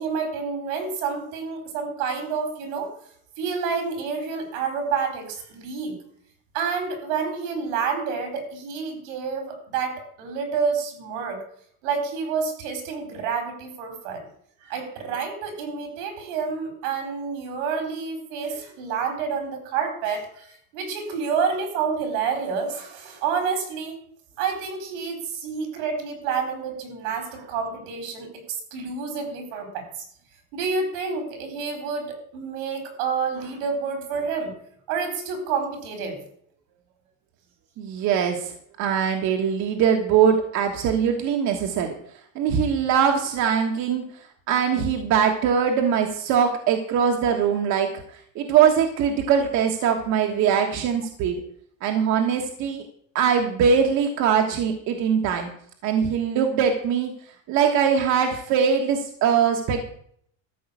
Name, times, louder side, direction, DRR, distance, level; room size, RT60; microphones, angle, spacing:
voice 1, 0.0-2.9 3.4-5.9 6.5-11.4 11.8-14.3 14.6-24.0 24.4-29.9 30.5-34.5 34.9-36.2, right 5 dB, 90° right, 6 dB, 4.2 m, -29 dB
voice 2, 37.8-42.0 42.3-44.0 44.5-51.4 51.8-52.9 53.1-55.5 55.8-57.1 57.5-59.9, right 7 dB, 55° right, 3 dB, 1.5 m, -22 dB
13.5 x 5.5 x 8.3 m, 0.63 s
cardioid pair, 150°, 34 cm